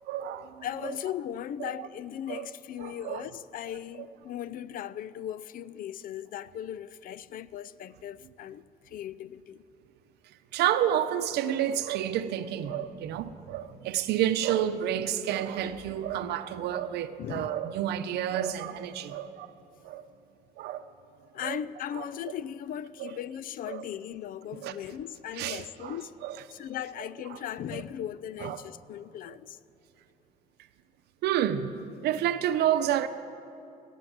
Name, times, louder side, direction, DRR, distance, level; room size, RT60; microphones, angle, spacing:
voice 1, 0.1-0.9 1.6-1.9 2.3-2.5 2.8-3.2 10.5-19.5 19.8-20.0 20.6-20.8 21.4-21.6 22.0-22.1 23.0-23.1 23.7-23.8 24.6-24.7 25.4-26.0 26.2-26.4 27.3-27.4 27.7-27.8 28.4-28.6 31.2-31.7 32.0-33.1, right 11 dB, 75° right, 0.7 m, -30 dB
voice 2, 0.6-9.6 17.2-17.6 21.3-26.1 26.5-29.6, left 10 dB, 55° left, 0.5 m, -38 dB
16.5 x 8.4 x 8.0 m
cardioid pair, 110°, 17 cm